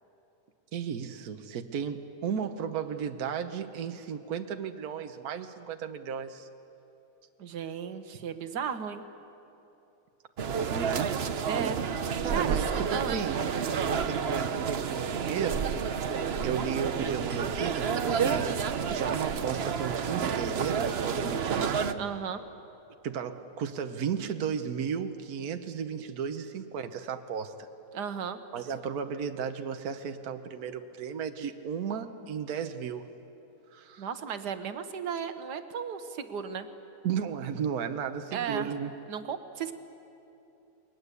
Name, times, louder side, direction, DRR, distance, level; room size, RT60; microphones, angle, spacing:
voice 1, 0.7-6.5 10.7-11.2 12.2-13.4 13.6-15.6 16.4-18.5 18.9-22.1 23.0-27.7 28.5-33.1 33.7-34.1 37.0-38.9, right 7 dB, 70° right, 7 dB, 1.5 m, -34 dB
voice 2, 7.4-9.0 11.5-11.9 12.3-12.6 12.9-13.2 22.0-22.4 27.9-28.4 34.0-36.7 38.3-38.7 39.1-39.7, right 7 dB, 90° right, 9 dB, 1.7 m, -34 dB
sound 1, 10.4-21.9, right 6 dB, 50° right, 0.9 m, -30 dB
29.0 x 21.5 x 8.3 m, 2.9 s
omnidirectional pair, 1.7 m